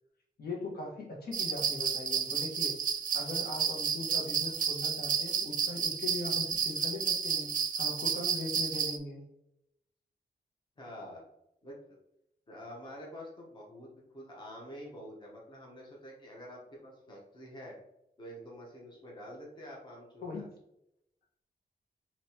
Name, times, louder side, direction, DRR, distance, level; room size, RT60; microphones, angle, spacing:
voice 1, 0.4-2.8 3.1-9.2 20.2-20.4, left 2 dB, 75° left, -3 dB, 1.4 m, -40 dB
sound 1, 1.3-9.0, right 7 dB, 55° right, 0.4 m, -31 dB
voice 2, 10.8-11.2 11.6-12.0 12.5-13.9 14.1-17.8 18.2-20.4, equal, 30° left, -3 dB, 1.1 m, -47 dB
5.3 x 3.0 x 2.9 m, 0.82 s
wide cardioid pair, 175°, 16 cm